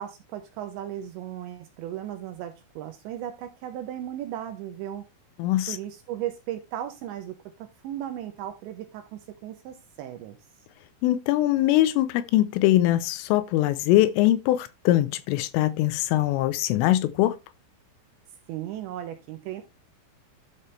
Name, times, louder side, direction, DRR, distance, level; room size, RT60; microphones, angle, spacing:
voice 1, 0.0-5.0 5.7-10.4 18.5-19.6, right 11 dB, 80° right, 2.7 m, -36 dB
voice 2, 5.4-5.8 11.0-17.4, left 15 dB, 85° left, 3.2 m, -22 dB
12.0 x 5.6 x 3.2 m
omnidirectional pair, 5.9 m